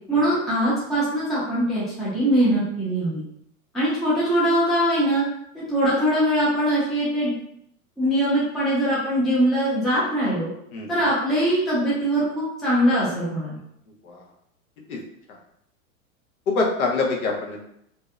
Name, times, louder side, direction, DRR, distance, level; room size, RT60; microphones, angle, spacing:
voice 1, 0.1-3.2 3.7-5.2 5.5-7.3 8.0-10.5 10.9-13.6, right 1 dB, ahead, -9 dB, 0.4 m, -22 dB
voice 2, 10.7-11.1 14.0-14.2 14.9-15.0 16.5-17.6, left 3 dB, 80° left, -1 dB, 0.8 m, -25 dB
2.6 x 2.0 x 2.4 m, 0.74 s
supercardioid pair, 135°, 43 cm